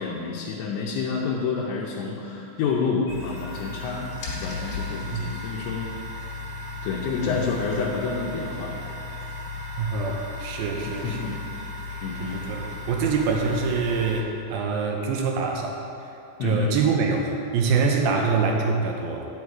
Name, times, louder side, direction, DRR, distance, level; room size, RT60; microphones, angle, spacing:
voice 1, 0.0-4.1 4.4-5.9 6.8-8.8 10.9-11.4 12.0-12.4 16.4-16.8 18.1-18.3, left 5 dB, 85° left, -3 dB, 2.9 m, -29 dB
sound 1, 3.1-14.2, left 3 dB, 60° left, 3.0 m, -35 dB
voice 2, 9.8-11.3 11.9-16.1 16.4-19.3, right 4 dB, 80° right, 1 dB, 2.3 m, -25 dB
9.4 x 7.1 x 4.7 m, 2.7 s
omnidirectional pair, 4.7 m